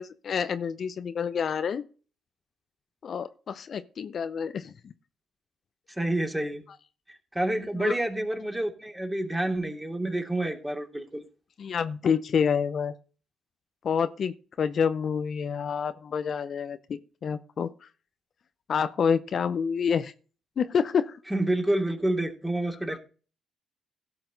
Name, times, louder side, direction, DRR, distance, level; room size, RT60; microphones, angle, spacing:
voice 1, 0.0-1.8 3.0-4.7 7.8-8.0 11.6-12.9 13.8-17.7 18.7-20.1 20.6-21.2 22.9-23.0, left 6 dB, 55° left, 12 dB, 0.7 m, -28 dB
voice 2, 6.0-6.6 7.1-11.2 21.3-23.0, right 1 dB, 15° right, 3 dB, 2.8 m, -28 dB
16.5 x 5.9 x 3.9 m, 0.38 s
hypercardioid pair, 50°, 0 cm